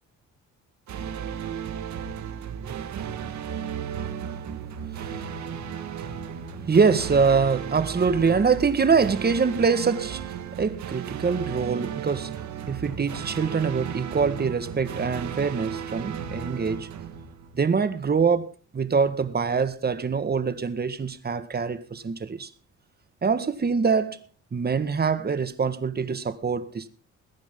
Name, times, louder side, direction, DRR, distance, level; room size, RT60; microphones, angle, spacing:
sound 1, 0.9-17.9, right 8 dB, 70° right, 1.9 m, -35 dB
voice 1, 2.6-3.6 4.0-4.4 4.7-5.6 6.0-12.4 12.7-16.9 17.5-22.5 23.2-24.2 24.5-26.9, right 5 dB, 30° right, 1.7 m, -25 dB
21.5 x 9.9 x 3.8 m
cardioid pair, 90°, 30 cm